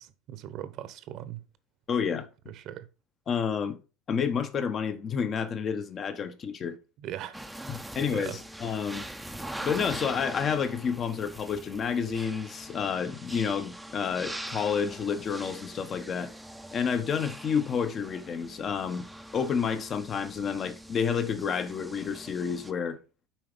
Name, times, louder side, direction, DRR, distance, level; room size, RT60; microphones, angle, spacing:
voice 1, 0.0-1.4 2.5-2.9 7.0-7.4 7.7-7.8 8.1-8.4, right 12 dB, 55° right, 1.0 m, -39 dB
voice 2, 1.9-2.3 3.3-3.8 4.1-6.8 7.7-9.1 9.6-16.3 16.7-19.1 19.3-23.0, left 6 dB, 35° left, 1.2 m, -30 dB
sound 1, 7.3-22.7, right 1 dB, 5° right, 0.8 m, -43 dB
7.7 x 4.9 x 5.2 m
cardioid pair, 130°, 0 cm